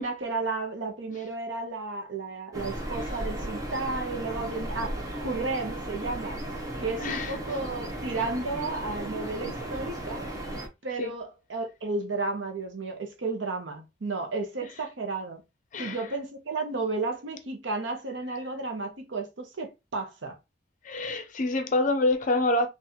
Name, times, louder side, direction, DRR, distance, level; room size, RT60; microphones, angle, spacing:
voice 1, 0.0-6.4 6.8-10.3 10.8-15.4 15.8-20.4, right 3 dB, 65° right, 0.8 m, -33 dB
sound 1, 2.5-10.7, right 1 dB, 20° right, 0.7 m, -35 dB
voice 2, 7.0-7.3 11.0-11.1 15.7-16.0 20.8-22.7, left 2 dB, 40° left, 0.5 m, -26 dB
4.0 x 2.4 x 2.7 m
head